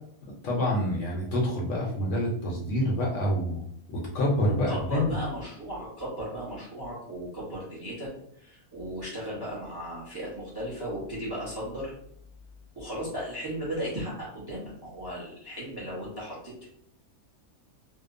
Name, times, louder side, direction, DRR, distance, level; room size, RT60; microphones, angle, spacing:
voice 1, 0.4-3.6 3.9-5.1, left 1 dB, 65° left, -2 dB, 0.8 m, -27 dB
voice 2, 4.7-11.9 12.7-16.7, equal, 25° right, -6 dB, 0.6 m, -36 dB
2.8 x 2.0 x 2.4 m, 0.70 s
omnidirectional pair, 1.5 m